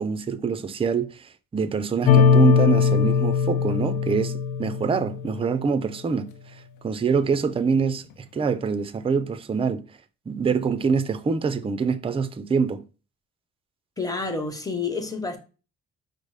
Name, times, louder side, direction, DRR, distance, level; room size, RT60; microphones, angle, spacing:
voice 1, 0.0-6.3 6.8-8.1 8.3-9.8 10.3-12.8, right 5 dB, 20° right, 0.4 m, -25 dB
sound 1, 2.0-5.5, left 6 dB, 85° left, 0.6 m, -20 dB
voice 2, 14.0-15.4, left 4 dB, 10° left, 1.1 m, -29 dB
5.1 x 2.0 x 4.8 m
cardioid pair, 90°, 30 cm